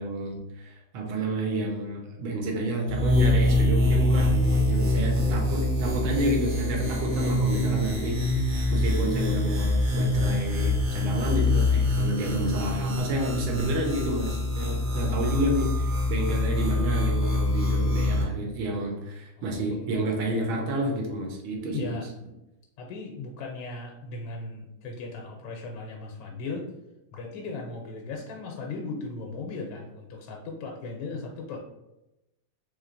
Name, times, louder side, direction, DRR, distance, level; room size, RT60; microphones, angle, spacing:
voice 1, 0.0-22.0, right 1 dB, 75° right, 1 dB, 1.5 m, -30 dB
sound 1, 2.8-18.2, left 2 dB, 60° right, 0.9 m, -25 dB
voice 2, 7.7-8.4 14.7-15.3 19.6-19.9 21.7-22.1 22.8-26.7 27.1-31.6, left 3 dB, 80° left, 1 dB, 1.3 m, -37 dB
3.4 x 3.1 x 2.5 m, 0.93 s
omnidirectional pair, 2.2 m